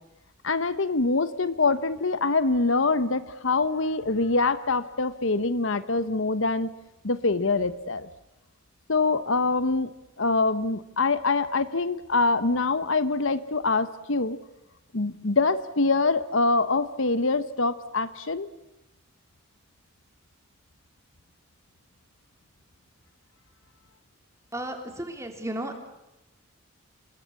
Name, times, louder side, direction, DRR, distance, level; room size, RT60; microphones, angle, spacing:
voice 1, 0.4-6.7 7.0-8.1 8.9-9.9 10.2-14.4 14.9-18.5, left 3 dB, 65° left, 13 dB, 1.1 m, -24 dB
voice 2, 24.5-25.8, right 1 dB, 15° right, 4 dB, 3.4 m, -34 dB
28.0 x 21.5 x 8.4 m, 0.95 s
head